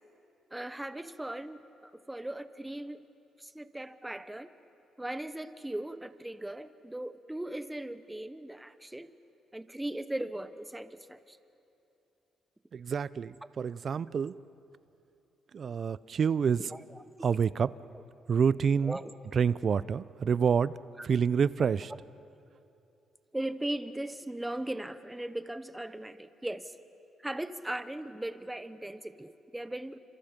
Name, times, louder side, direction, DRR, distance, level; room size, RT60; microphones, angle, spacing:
voice 1, 0.5-3.0 3.4-4.5 5.0-9.1 9.5-11.4 16.7-16.8 18.8-19.1 23.3-26.7 27.2-30.0, right 1 dB, 10° right, 12 dB, 0.9 m, -38 dB
voice 2, 12.7-14.4 15.5-16.6 17.2-17.7 18.3-19.0 19.3-20.7 21.0-21.9, right 6 dB, 50° right, 18 dB, 0.5 m, -27 dB
29.5 x 26.5 x 5.2 m, 2.9 s
cardioid pair, 90°, 0 cm